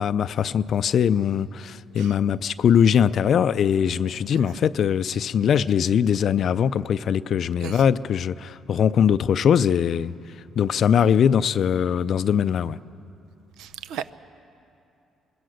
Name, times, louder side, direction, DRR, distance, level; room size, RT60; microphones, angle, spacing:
voice 1, 0.0-10.1 10.6-12.8, left 8 dB, 55° left, 0.4 m, -21 dB
voice 2, 13.6-14.2, right 9 dB, 85° right, 0.6 m, -34 dB
24.5 x 21.0 x 6.5 m
cardioid pair, 115°, 0 cm